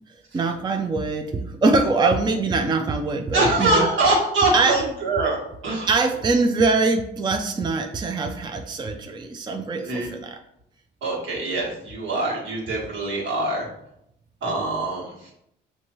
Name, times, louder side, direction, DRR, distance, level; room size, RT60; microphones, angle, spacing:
voice 1, 0.3-3.9 4.5-4.8 5.9-10.2 14.5-14.6, right 3 dB, 20° right, 4 dB, 0.4 m, -23 dB
voice 2, 3.3-6.0 9.8-10.1 11.0-13.7 14.4-15.3, right 2 dB, 75° right, -4 dB, 1.6 m, -24 dB
5.7 x 2.6 x 3.0 m, 0.77 s
cardioid pair, 90°, 20 cm